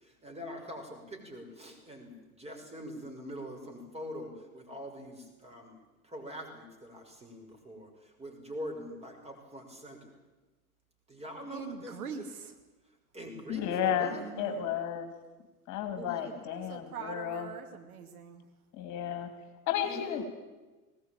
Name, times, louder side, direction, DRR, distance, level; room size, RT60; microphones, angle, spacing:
voice 1, 0.2-5.7 6.1-7.9 8.2-10.0 11.1-12.3 13.1-14.2 16.0-16.5 19.8-20.2, equal, 15° right, 3 dB, 6.6 m, -43 dB
voice 2, 11.5-12.5 14.1-14.8 16.5-18.4, right 6 dB, 70° right, 5 dB, 2.5 m, -43 dB
voice 3, 13.5-15.1 15.7-17.5 18.7-19.3 19.7-20.2, left 9 dB, 40° left, 7 dB, 2.9 m, -33 dB
21.0 x 18.5 x 9.1 m, 1.2 s
figure-of-eight pair, 75°, 45 cm